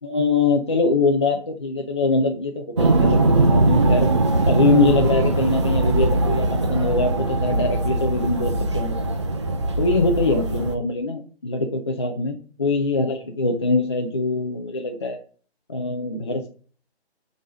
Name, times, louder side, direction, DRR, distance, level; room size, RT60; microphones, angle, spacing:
voice 1, 0.0-4.1 4.5-9.0 9.8-15.2 15.7-16.5, left 3 dB, 25° left, 2 dB, 0.5 m, -23 dB
sound 1, 2.8-10.8, right 2 dB, 25° right, 0.6 m, -20 dB
7.1 x 4.0 x 5.0 m, 0.40 s
figure-of-eight pair, 155°, 33 cm